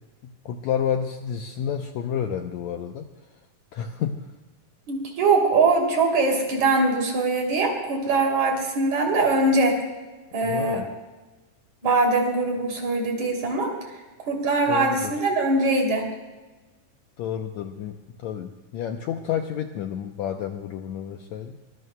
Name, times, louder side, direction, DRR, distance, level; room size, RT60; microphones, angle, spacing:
voice 1, 0.2-3.1 3.7-4.2 10.4-10.9 14.7-15.1 17.2-21.6, left 8 dB, 75° left, 5 dB, 1.7 m, -30 dB
voice 2, 4.9-9.8 10.3-10.8 11.8-13.7 14.3-16.0, right 3 dB, 55° right, 1 dB, 4.2 m, -22 dB
24.0 x 21.0 x 2.2 m, 1.2 s
omnidirectional pair, 3.9 m